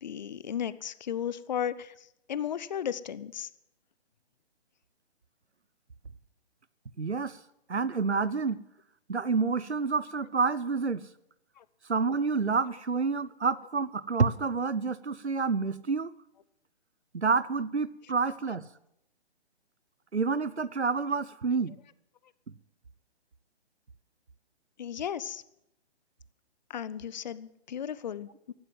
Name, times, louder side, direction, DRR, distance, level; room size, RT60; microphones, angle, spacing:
voice 1, 0.0-3.5 11.6-11.7 24.8-25.4 26.7-28.5, left 9 dB, 40° left, 17 dB, 0.7 m, -35 dB
voice 2, 7.0-7.4 7.7-8.6 9.1-11.0 11.9-16.1 17.1-18.6 20.1-21.7, right 4 dB, 85° right, 18 dB, 0.8 m, -28 dB
14.5 x 12.0 x 7.6 m, 0.83 s
figure-of-eight pair, 135°, 33 cm